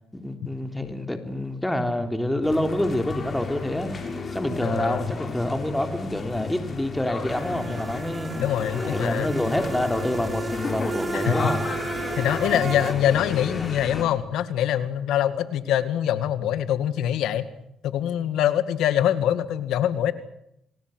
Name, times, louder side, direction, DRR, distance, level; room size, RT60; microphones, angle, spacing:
voice 1, 0.1-3.9 4.3-8.5 8.9-11.6, left 1 dB, 10° left, 7 dB, 3.5 m, -27 dB
sound 1, 2.4-14.0, left 4 dB, 40° left, 6.7 m, -33 dB
voice 2, 4.6-5.0 8.4-9.3 11.1-11.5 12.2-17.5 17.8-20.1, left 10 dB, 85° left, 13 dB, 2.0 m, -24 dB
sound 2, 7.3-12.9, right 4 dB, 30° right, 2.4 m, -34 dB
28.5 x 19.5 x 8.0 m, 0.78 s
cardioid pair, 90°, 0 cm